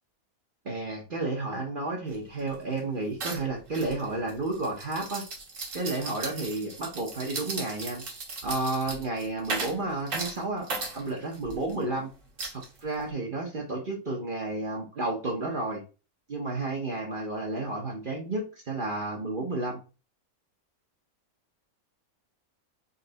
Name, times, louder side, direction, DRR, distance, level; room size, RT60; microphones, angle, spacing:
voice 1, 0.6-5.2 5.7-8.0 8.4-10.7 10.9-12.1 12.5-15.8 16.3-19.8, right 2 dB, 40° right, 0 dB, 0.9 m, -31 dB
sound 1, 2.1-2.2 2.5-2.8 3.2-11.7 12.4-13.1, right 3 dB, 60° right, 1.5 m, -37 dB
4.1 x 3.2 x 3.8 m, 0.34 s
omnidirectional pair, 1.5 m